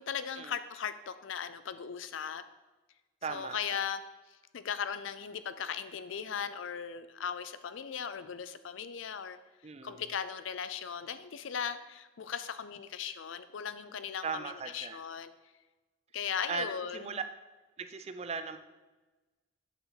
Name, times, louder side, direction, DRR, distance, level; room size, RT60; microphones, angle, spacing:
voice 1, 0.0-2.4 3.3-4.0 4.3-9.4 9.8-15.3 16.1-17.1, left 7 dB, 75° left, 13 dB, 0.5 m, -38 dB
voice 2, 3.2-3.8 9.6-10.0 14.2-15.0 16.5-17.2 17.8-18.6, right 4 dB, 30° right, 10 dB, 0.4 m, -38 dB
8.1 x 6.3 x 4.0 m, 1.2 s
head